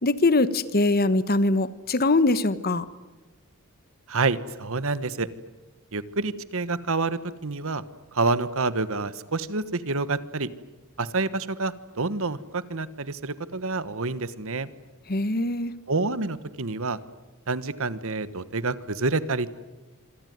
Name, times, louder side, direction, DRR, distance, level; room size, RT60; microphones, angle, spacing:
voice 1, 0.0-2.9 15.1-15.7, left 2 dB, 45° left, 15 dB, 1.2 m, -22 dB
voice 2, 4.1-5.3 5.9-7.8 8.1-10.5 11.0-14.7 15.9-17.0 17.5-19.5, right 3 dB, 65° right, 15 dB, 1.3 m, -28 dB
26.5 x 24.0 x 9.4 m, 1.2 s
head